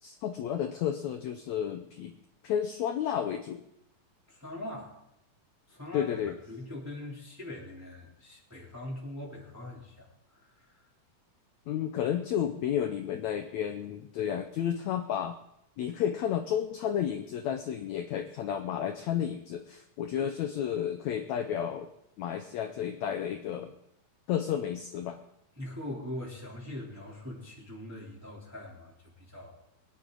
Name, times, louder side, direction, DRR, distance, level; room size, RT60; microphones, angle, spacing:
voice 1, 0.0-2.1 2.4-3.6 5.9-6.4 11.7-15.4 15.8-21.9 22.2-23.7 24.3-25.2, left 9 dB, 80° left, 7 dB, 1.6 m, -32 dB
voice 2, 4.3-4.9 5.7-6.1 6.5-10.8 25.6-29.6, left 1 dB, 5° right, -4 dB, 2.8 m, -42 dB
23.0 x 10.0 x 3.9 m, 0.78 s
omnidirectional pair, 4.1 m